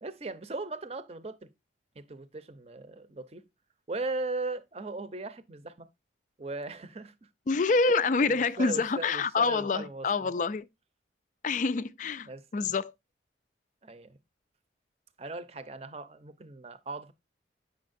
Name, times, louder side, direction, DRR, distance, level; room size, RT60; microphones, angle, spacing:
voice 1, 0.0-1.5 2.0-3.4 3.9-5.9 6.4-7.3 7.9-10.3 12.2-12.7 13.8-14.2 15.2-17.1, right 3 dB, 35° right, 0.6 m, -38 dB
voice 2, 7.5-10.7 11.4-12.9, left 4 dB, 45° left, 0.4 m, -27 dB
8.2 x 6.4 x 2.6 m
head